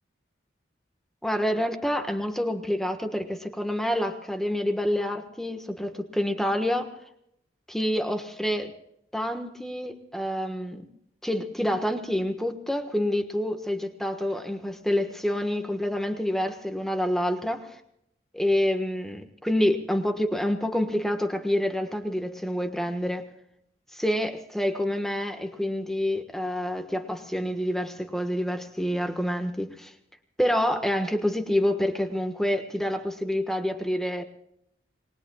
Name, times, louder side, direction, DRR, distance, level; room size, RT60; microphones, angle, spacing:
voice 1, 1.2-6.9 7.7-8.7 9.1-10.9 11.2-17.8 18.3-23.3 23.9-29.9 30.4-34.2, equal, ahead, 6 dB, 1.4 m, -27 dB
28.0 x 20.5 x 2.4 m, 0.76 s
head